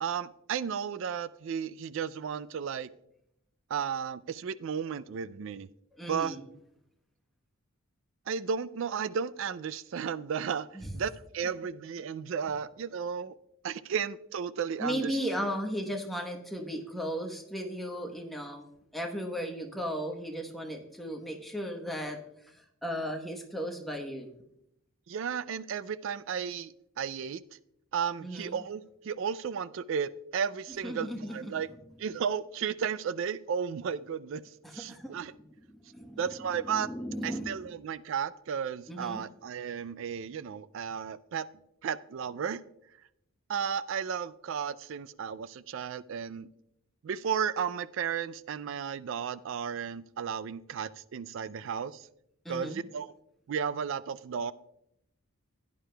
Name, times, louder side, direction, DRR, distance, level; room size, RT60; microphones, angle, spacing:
voice 1, 0.0-2.9 3.7-5.7 6.1-6.4 8.3-10.7 10.9-13.3 13.6-15.2 25.1-27.4 27.9-31.7 32.0-34.4 34.7-35.3 36.2-36.9 37.2-41.5 41.8-42.6 43.5-46.5 47.0-52.1 52.5-53.1 53.5-54.5, right 7 dB, 60° right, 17 dB, 0.3 m, -34 dB
voice 2, 5.9-6.5 10.7-10.9 14.8-18.7 18.9-22.2 22.5-24.3 28.2-28.6 30.8-31.8 34.6-35.2 35.7-36.2 36.7-37.7 38.9-39.2 52.4-52.8, equal, ahead, 2 dB, 1.0 m, -36 dB
16.0 x 9.5 x 2.2 m, 0.78 s
head